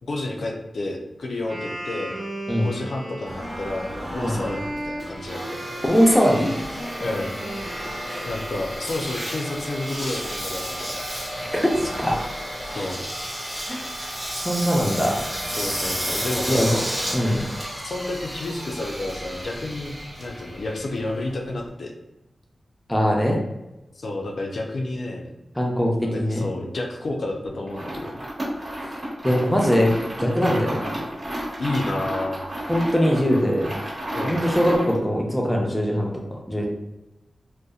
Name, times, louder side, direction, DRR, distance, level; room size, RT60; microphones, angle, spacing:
voice 1, 0.0-2.1 2.6-5.6 7.0-7.4 8.2-11.0 12.6-13.0 15.6-16.7 17.8-21.9 24.0-25.3 26.1-28.1 30.4-30.6 31.6-32.4 34.1-34.4, left 2 dB, 70° left, 1 dB, 0.4 m, -30 dB
Wind instrument woodwind instrument, 1.4-9.4, right 1 dB, 80° right, 0.8 m, -35 dB
Engine, 3.3-21.7, equal, 15° right, 0.9 m, -32 dB
voice 2, 5.8-6.9 8.1-8.3 11.4-12.2 12.7-12.9 13.7-13.9 14.4-15.2 16.5-16.7 17.1-17.4 22.9-23.4 25.5-26.5 28.8-29.0 29.2-29.9 30.2-31.0 32.7-33.7 34.2-36.7, equal, 10° left, -1 dB, 0.6 m, -22 dB
sound 1, 27.7-35.0, equal, 40° right, 1.1 m, -32 dB
2.7 x 2.1 x 2.3 m, 0.97 s
wide cardioid pair, 70°, 0 cm